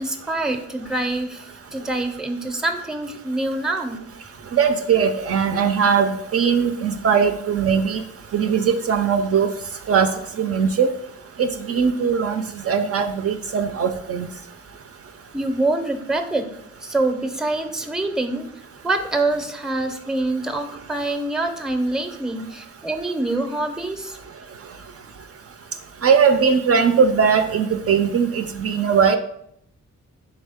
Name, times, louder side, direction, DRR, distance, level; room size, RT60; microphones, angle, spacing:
voice 1, 0.0-4.0 15.3-16.5 16.8-18.5 18.8-24.2, right 2 dB, ahead, 7 dB, 0.6 m, -25 dB
voice 2, 4.5-8.0 8.3-9.5 9.9-10.1 10.4-10.9 11.4-14.3 26.0-29.2, right 6 dB, 55° right, 7 dB, 0.4 m, -19 dB
3.6 x 3.5 x 3.4 m, 0.72 s
cardioid pair, 60°, 29 cm